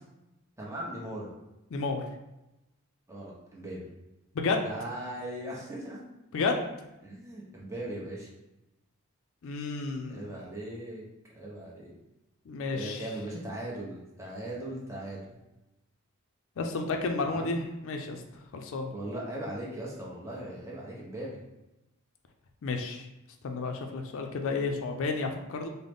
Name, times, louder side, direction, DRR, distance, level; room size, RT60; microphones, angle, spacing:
voice 1, 0.6-1.3 3.1-3.9 4.6-6.0 7.0-8.3 10.1-11.0 11.3-11.9 12.7-15.2 17.2-17.6 18.9-21.4, right 1 dB, 15° right, -5 dB, 0.8 m, -39 dB
voice 2, 1.7-2.0 4.4-4.7 6.3-6.6 9.4-10.3 12.5-13.1 16.6-18.2 18.5-18.9 22.6-23.1 23.4-25.7, left 3 dB, 65° left, 4 dB, 0.4 m, -31 dB
3.8 x 2.0 x 3.4 m, 0.95 s
head